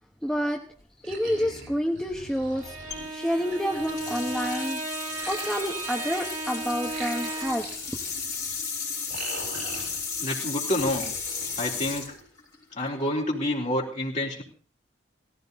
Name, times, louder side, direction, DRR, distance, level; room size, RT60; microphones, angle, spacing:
voice 1, 0.2-0.6 1.0-2.8 3.1-4.8 5.3-8.0, equal, 5° left, 0 dB, 1.1 m, -29 dB
sound 1, 1.0-4.7 5.1-10.3 10.7-12.5, right 3 dB, 60° right, 6.5 m, -43 dB
Bowed string instrument, 2.5-7.8, right 3 dB, 40° right, 2.1 m, -35 dB
sound 2, 2.9-13.1, left 5 dB, 20° left, 5.3 m, -35 dB
voice 2, 10.2-11.1 11.6-12.1 12.8-14.4, left 1 dB, 35° left, -3 dB, 4.0 m, -28 dB
18.0 x 15.0 x 4.1 m, 0.41 s
head